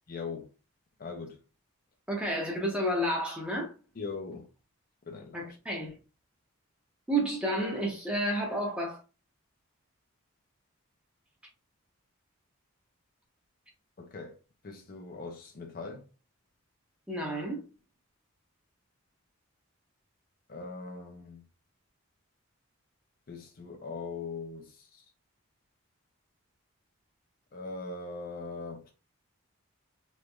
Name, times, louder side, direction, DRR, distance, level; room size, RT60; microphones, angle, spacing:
voice 1, 0.1-0.5 1.0-1.4 4.0-4.5 5.1-5.6 14.0-14.3 14.6-16.1 20.5-21.5 23.3-25.0 27.5-28.9, left 4 dB, 40° left, 0.5 m, -40 dB
voice 2, 2.1-3.7 5.3-5.9 7.1-9.0 17.1-17.6, right 1 dB, 5° right, 0.8 m, -30 dB
3.1 x 3.0 x 2.2 m
head